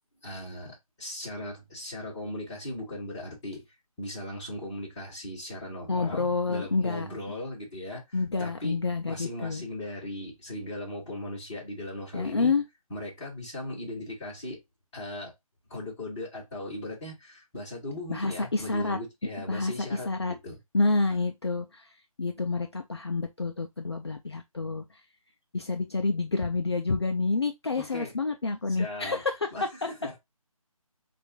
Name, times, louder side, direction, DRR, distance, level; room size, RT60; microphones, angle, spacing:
voice 1, 0.2-3.6 4.0-8.8 9.1-12.5 12.9-14.6 14.9-15.3 15.7-20.6 27.8-28.1 28.7-29.2 29.5-30.2, left 1 dB, 5° left, 1.0 m, -38 dB
voice 2, 5.9-7.1 8.1-9.6 12.1-12.6 18.1-19.0 19.5-20.3 20.7-21.9 22.2-24.8 25.5-29.7, left 3 dB, 45° left, 0.4 m, -28 dB
3.9 x 2.5 x 3.6 m
figure-of-eight pair, 175°, 19 cm